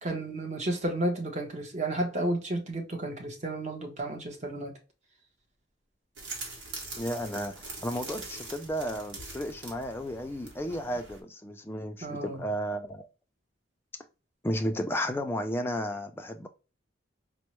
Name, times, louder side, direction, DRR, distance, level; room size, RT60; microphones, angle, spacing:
voice 1, 0.0-4.7 12.0-12.4, right 1 dB, 35° right, 0.8 m, -32 dB
sound 1, 6.2-11.2, right 3 dB, 70° right, 1.2 m, -43 dB
voice 2, 7.0-13.1 14.4-16.5, equal, 10° left, 0.3 m, -33 dB
4.3 x 2.1 x 3.0 m
head